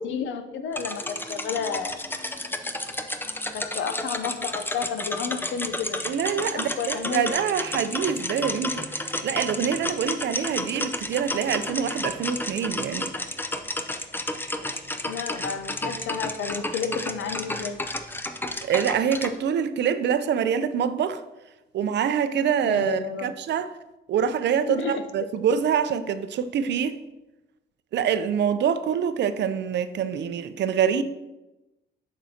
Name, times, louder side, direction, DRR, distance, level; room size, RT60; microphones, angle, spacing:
voice 1, 0.0-2.0 3.5-6.0 6.5-7.3 15.1-17.8 22.6-23.3 24.7-25.0, left 6 dB, 75° left, 0.6 m, -31 dB
sound 1, 0.7-19.3, left 1 dB, 10° left, 0.5 m, -31 dB
voice 2, 6.0-13.1 18.6-21.2 21.7-23.7 24.1-27.0 27.9-31.0, right 8 dB, 60° right, 0.5 m, -25 dB
7.3 x 6.0 x 2.8 m
cardioid pair, 90°, 20 cm